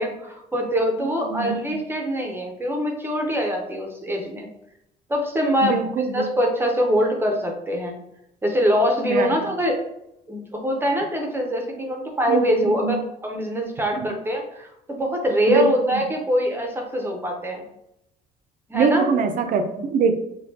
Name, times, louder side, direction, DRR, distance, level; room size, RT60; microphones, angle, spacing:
voice 1, 0.0-4.5 5.1-8.0 8.4-9.8 10.3-17.6 18.7-19.1, equal, 15° right, 1 dB, 0.7 m, -24 dB
voice 2, 1.0-1.6 5.6-6.3 9.1-9.3 12.3-13.0 14.0-14.1 15.5-16.0 18.7-20.1, right 5 dB, 55° right, 7 dB, 0.5 m, -23 dB
4.1 x 2.3 x 2.7 m, 0.83 s
cardioid pair, 110°, 17 cm